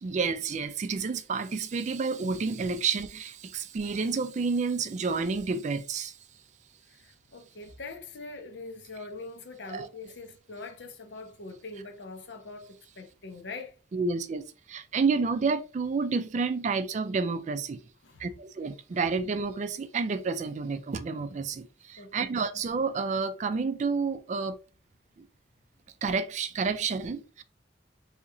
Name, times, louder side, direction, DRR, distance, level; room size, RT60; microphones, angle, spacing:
voice 1, 0.0-6.2 9.7-9.9 13.9-14.4 14.7-17.8 18.2-24.6 25.2-25.3 26.0-27.4, right 4 dB, 40° right, 0.3 m, -30 dB
voice 2, 6.9-13.8 18.0-18.3 22.0-22.3, left 3 dB, 70° left, 0.7 m, -43 dB
3.8 x 2.8 x 2.5 m
head